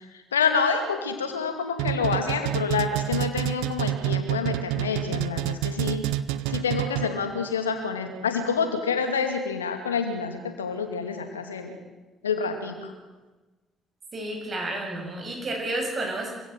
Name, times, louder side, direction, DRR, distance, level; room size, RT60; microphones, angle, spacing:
voice 1, 0.3-6.0 6.5-11.8 12.2-12.9, left 5 dB, 85° left, 7 dB, 2.3 m, -27 dB
sound 1, 1.8-7.3, right 13 dB, 70° right, 0.7 m, -28 dB
voice 2, 14.1-16.3, right 2 dB, 40° right, 2 dB, 7.9 m, -31 dB
26.0 x 16.5 x 7.7 m, 1.2 s
figure-of-eight pair, 45°, 0 cm